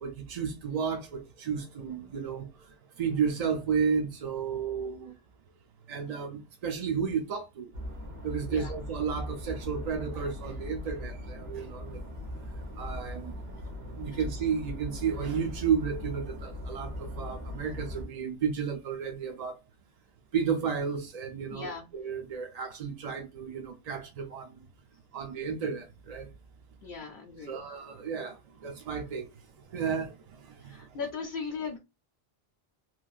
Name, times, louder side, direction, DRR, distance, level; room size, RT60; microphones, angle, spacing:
voice 1, 0.0-2.5 3.0-5.1 5.9-7.7 8.2-12.0 12.8-13.3 14.0-19.6 20.3-24.5 25.1-26.3 27.5-29.3 29.7-30.9, right 6 dB, 55° right, 0.5 m, -32 dB
sound 1, 7.7-18.1, left 1 dB, 75° right, 1.1 m, -39 dB
voice 2, 21.5-21.9 26.8-27.6 30.6-31.8, left 5 dB, 60° left, 0.7 m, -38 dB
3.2 x 2.4 x 2.4 m
omnidirectional pair, 1.0 m